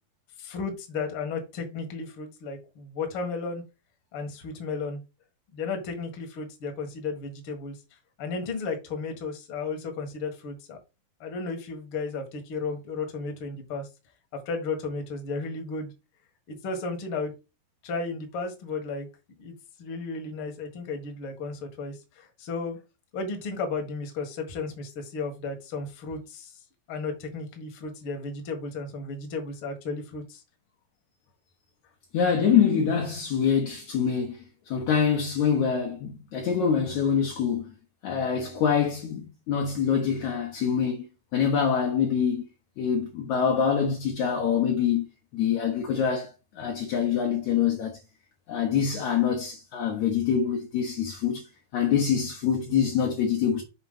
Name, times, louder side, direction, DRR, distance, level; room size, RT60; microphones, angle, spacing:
voice 1, 0.4-3.6 4.1-5.0 5.5-7.7 8.2-10.8 11.2-13.9 14.4-15.9 16.5-17.3 17.8-19.1 19.4-19.5 19.8-22.8 23.1-26.5 26.9-30.4, left 4 dB, 55° left, 1.6 m, -34 dB
voice 2, 32.1-37.7 38.0-41.1 41.3-42.5 42.8-45.1 45.3-48.0 48.5-51.4 51.7-53.6, left 7 dB, 75° left, 1.7 m, -25 dB
7.2 x 2.9 x 5.4 m
omnidirectional pair, 4.7 m